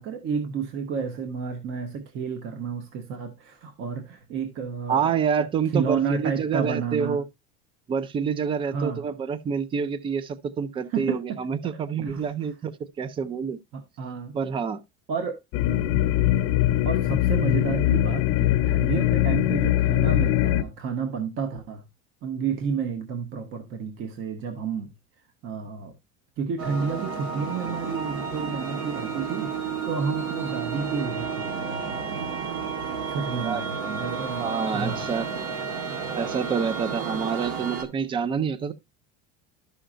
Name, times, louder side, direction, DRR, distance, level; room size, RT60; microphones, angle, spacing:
voice 1, 0.0-5.1 5.4-5.5 5.7-7.2 8.6-9.0 10.9-11.4 11.6-11.7 12.0-12.5 13.7-14.4 15.1-15.4 16.8-21.9 22.2-24.9 25.4-25.9 26.4-32.3 33.1-35.0, right 6 dB, 45° right, 1.0 m, -31 dB
voice 2, 4.9-7.2 7.9-13.6 14.3-14.8 33.4-33.7 34.4-35.3 36.1-38.7, right 6 dB, 20° right, 0.4 m, -27 dB
sound 1, 15.5-20.6, left 13 dB, 55° left, 0.7 m, -22 dB
sound 2, 26.6-37.8, right 6 dB, 65° right, 1.7 m, -31 dB
12.5 x 5.7 x 2.5 m
cardioid pair, 160°, 29 cm